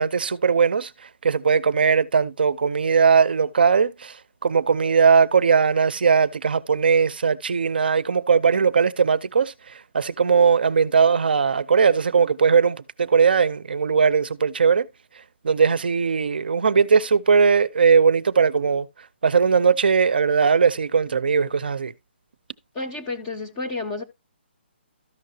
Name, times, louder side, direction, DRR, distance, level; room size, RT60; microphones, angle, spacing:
voice 1, 0.0-14.9 15.4-18.9 19.2-21.9, right 6 dB, 55° right, 0.5 m, -19 dB
voice 2, 22.7-24.0, left 3 dB, 15° left, 0.5 m, -30 dB
13.0 x 5.7 x 2.7 m
hypercardioid pair, 175°, 6 cm